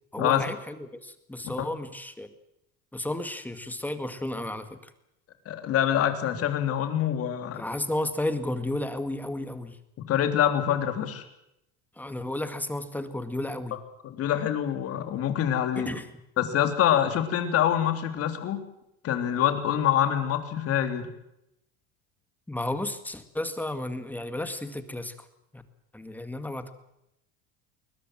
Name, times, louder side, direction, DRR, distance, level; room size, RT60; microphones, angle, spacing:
voice 1, 0.1-2.3 2.9-4.9 7.5-9.8 12.0-13.8 15.8-16.1 22.5-25.1 25.5-25.6 25.9-26.7, left 1 dB, 5° left, 10 dB, 2.0 m, -33 dB
voice 2, 5.5-7.6 10.0-11.2 14.0-15.9 16.4-18.6 19.0-21.1, left 10 dB, 50° left, 8 dB, 3.4 m, -25 dB
22.0 x 20.0 x 7.7 m, 0.82 s
cardioid pair, 135°, 31 cm